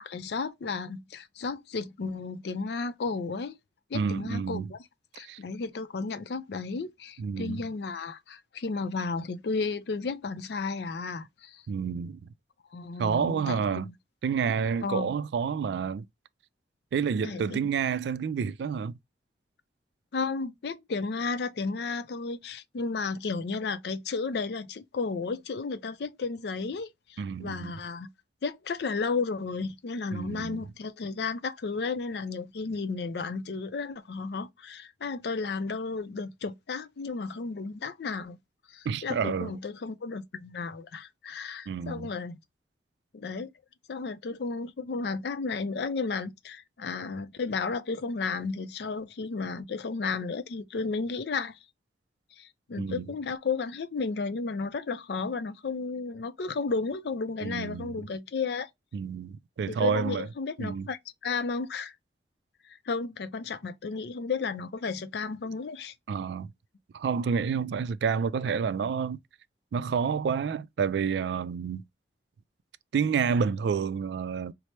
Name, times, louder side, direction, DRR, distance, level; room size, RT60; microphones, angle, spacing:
voice 1, 0.0-3.6 3.9-4.8 5.2-11.6 12.7-13.9 14.8-15.1 17.2-17.6 20.1-28.1 28.4-38.4 38.7-42.4 43.1-43.5 43.9-51.6 52.4-58.7 59.7-61.9 62.6-65.9, left 4 dB, 70° left, 0.4 m, -33 dB
voice 2, 3.9-4.7 5.2-5.4 7.2-7.7 11.7-12.3 13.0-13.9 14.2-16.1 16.9-19.0 27.2-27.7 30.1-30.6 38.9-39.5 41.7-42.1 52.8-53.1 57.4-58.0 58.9-60.3 60.6-60.9 66.1-66.5 66.9-69.2 69.7-71.8 72.9-74.5, right 6 dB, 75° right, 0.3 m, -29 dB
4.2 x 2.0 x 3.1 m
head